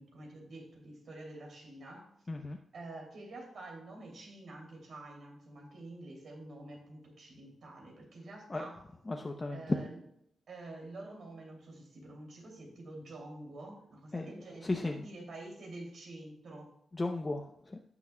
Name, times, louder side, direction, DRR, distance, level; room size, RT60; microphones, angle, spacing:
voice 1, 0.0-2.1 2.7-8.8 9.5-9.9 10.5-16.7, right 2 dB, 65° right, 0 dB, 2.6 m, -48 dB
voice 2, 2.3-2.6 8.5-8.7 9.1-9.8 14.1-15.1 16.9-17.8, left 2 dB, 25° left, 4 dB, 0.6 m, -35 dB
16.0 x 5.9 x 2.2 m, 0.74 s
wide cardioid pair, 135°, 0 cm